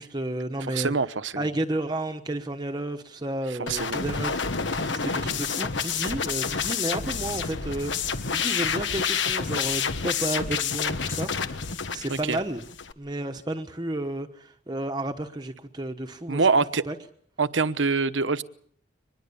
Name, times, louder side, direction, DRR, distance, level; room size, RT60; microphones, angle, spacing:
voice 1, 0.0-0.9 1.4-4.4 4.9-12.6 13.0-16.5 16.9-17.0, right 1 dB, 20° right, 6 dB, 1.1 m, -32 dB
voice 2, 0.6-1.5 3.7-4.0 4.8-4.9 12.1-12.4 16.3-16.8 17.4-18.4, right 4 dB, 75° right, 13 dB, 1.1 m, -25 dB
sound 1, 3.7-12.9, left 6 dB, 70° left, 1.3 m, -29 dB
24.5 x 21.0 x 7.0 m, 0.62 s
head